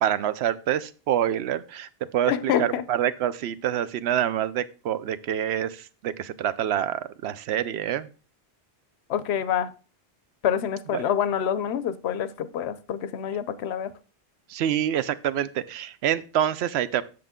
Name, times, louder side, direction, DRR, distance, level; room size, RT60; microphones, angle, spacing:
voice 1, 0.0-8.1 10.9-11.0 14.5-17.0, right 10 dB, 80° right, 0.8 m, -26 dB
voice 2, 2.3-2.8 9.1-9.7 10.4-13.9, left 9 dB, 80° left, 0.9 m, -26 dB
7.7 x 6.6 x 3.6 m
omnidirectional pair, 1.1 m